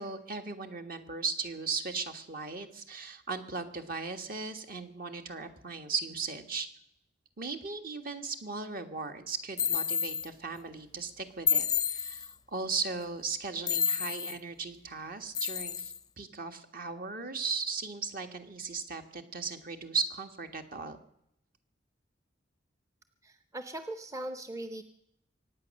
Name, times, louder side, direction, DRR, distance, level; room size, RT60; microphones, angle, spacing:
voice 1, 0.0-6.7 7.4-21.0, right 4 dB, 50° right, 6 dB, 1.6 m, -37 dB
sound 1, 9.6-10.3 11.5-12.3 13.7-14.4 15.3-16.0, left 7 dB, 20° left, 0.5 m, -30 dB
voice 2, 23.2-24.8, right 1 dB, 15° right, 9 dB, 0.7 m, -39 dB
24.0 x 9.3 x 6.5 m, 0.77 s
head